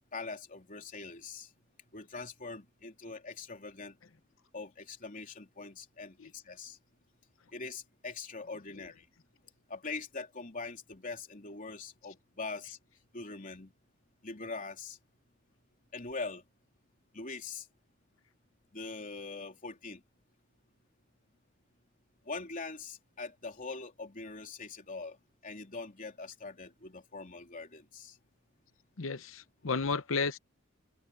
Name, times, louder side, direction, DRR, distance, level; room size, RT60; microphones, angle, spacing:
voice 1, 0.1-1.5 1.9-4.0 4.5-6.8 7.5-9.0 9.7-12.8 13.1-13.7 14.2-15.0 15.9-16.4 17.1-17.7 18.7-20.0 22.2-25.2 25.4-28.2, left 3 dB, 40° left, 3.4 m, -42 dB
voice 2, 29.0-30.4, left 4 dB, 70° left, 0.9 m, -33 dB
open air
head